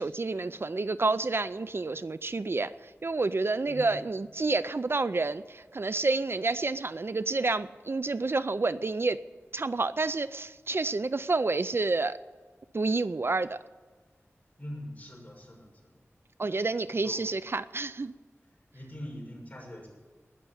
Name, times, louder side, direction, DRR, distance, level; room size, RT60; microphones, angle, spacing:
voice 1, 0.0-2.7 3.0-9.2 9.5-12.2 12.7-13.6 16.4-18.1, right 3 dB, 55° right, 15 dB, 0.4 m, -29 dB
voice 2, 14.6-15.9 16.9-17.2 18.7-19.9, equal, 30° left, -2 dB, 6.5 m, -42 dB
20.0 x 6.8 x 8.7 m, 1.4 s
wide cardioid pair, 65°, 5 cm